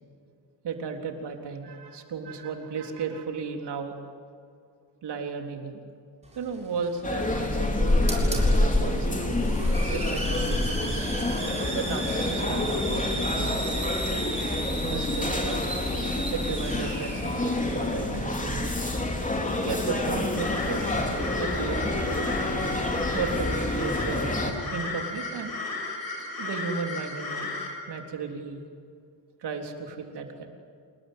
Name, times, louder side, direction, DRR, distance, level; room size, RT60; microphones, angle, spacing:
voice 1, 0.6-3.9 5.0-5.8 6.4-9.4 9.9-11.1 11.7-13.5 14.8-15.7 16.3-18.8 19.6-20.9 21.3-22.2 23.1-24.4 24.7-25.5 26.4-27.5 27.9-28.6 29.4-30.5, right 5 dB, 75° right, 3 dB, 3.8 m, -34 dB
Hiss, 6.2-24.1, right 2 dB, 15° right, 7.1 m, -37 dB
sound 1, 7.0-24.5, left 2 dB, 20° left, 3.3 m, -27 dB
sound 2, 20.4-27.7, left 3 dB, 60° left, 6.4 m, -34 dB
28.5 x 20.5 x 9.6 m, 2.4 s
cardioid pair, 115°, 41 cm